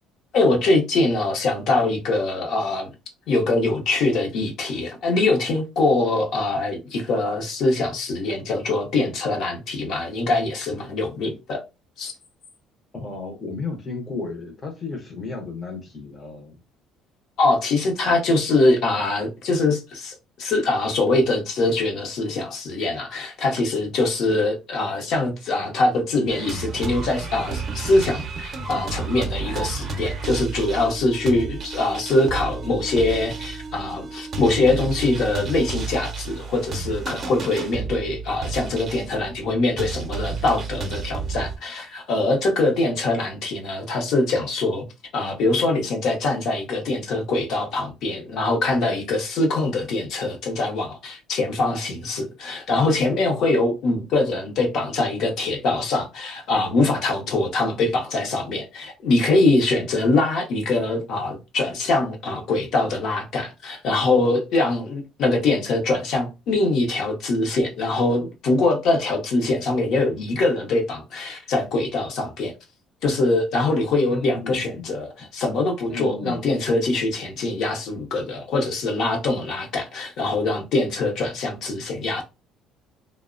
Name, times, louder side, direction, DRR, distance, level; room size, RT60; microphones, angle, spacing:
voice 1, 0.3-2.9 3.3-11.6 12.0-12.1 17.4-44.8 45.1-72.5 73.0-82.2, left 2 dB, 55° left, 0.7 m, -23 dB
voice 2, 12.9-16.5 74.1-74.9 75.9-76.5, left 3 dB, 20° left, 0.5 m, -33 dB
sound 1, 26.3-41.6, right 4 dB, 30° right, 0.5 m, -32 dB
2.8 x 2.0 x 2.4 m
cardioid pair, 150°, 0 cm